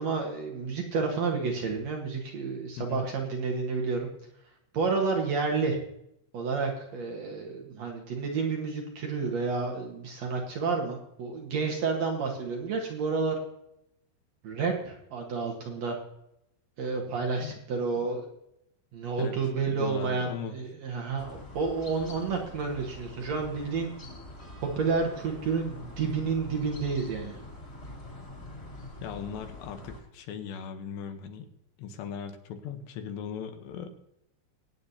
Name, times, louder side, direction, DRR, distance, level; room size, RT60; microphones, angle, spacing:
voice 1, 0.0-4.1 4.7-5.8 6.3-13.4 14.4-16.0 16.8-18.2 18.9-23.9 24.6-27.4, right 4 dB, 65° right, 1 dB, 1.6 m, -30 dB
voice 2, 19.7-20.6 29.0-31.5 31.8-33.9, left 7 dB, 75° left, 6 dB, 3.0 m, -38 dB
sound 1, 21.2-30.0, left 1 dB, 25° left, 2.1 m, -45 dB
22.5 x 9.5 x 2.8 m, 0.79 s
omnidirectional pair, 5.3 m